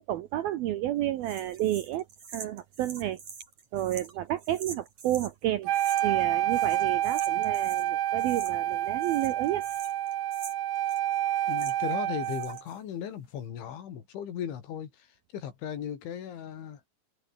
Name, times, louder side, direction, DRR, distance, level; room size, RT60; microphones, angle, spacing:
voice 1, 0.0-2.0 2.3-3.2 3.7-5.7 6.0-9.6, right 13 dB, 85° right, 2.1 m, -31 dB
sound 1, 1.2-5.3 5.7-6.2 6.5-7.9 8.2-8.7 9.0-11.9 12.2-12.8, right 5 dB, 35° right, 5.0 m, -46 dB
Wind instrument woodwind instrument, 5.7-12.6, right 12 dB, 65° right, 2.3 m, -28 dB
voice 2, 11.5-15.1 15.3-16.8, left 9 dB, 70° left, 5.2 m, -37 dB
omnidirectional pair, 5.8 m